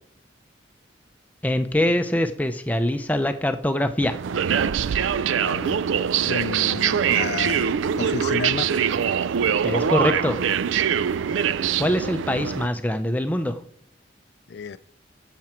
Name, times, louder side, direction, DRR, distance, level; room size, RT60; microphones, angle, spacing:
voice 1, 1.4-4.2 9.6-10.4 11.8-13.6, left 1 dB, 10° left, 0.5 m, -23 dB
sound 1, 4.0-12.7, right 8 dB, 85° right, 0.4 m, -23 dB
voice 2, 5.4-5.8 6.3-7.7 8.0-8.8 14.5-14.8, left 5 dB, 60° left, 0.4 m, -31 dB
15.0 x 6.0 x 4.4 m
head